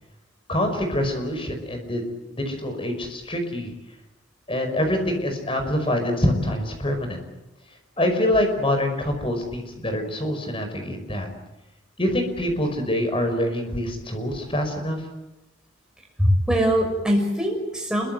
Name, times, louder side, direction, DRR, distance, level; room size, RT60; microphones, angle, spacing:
voice 1, 0.5-2.0 2.3-3.7 4.5-7.2 8.0-11.3 12.0-15.0, left 1 dB, 25° left, 5 dB, 5.6 m, -25 dB
voice 2, 16.2-18.1, equal, 5° right, 1 dB, 6.5 m, -22 dB
28.0 x 23.5 x 8.0 m, 0.97 s
head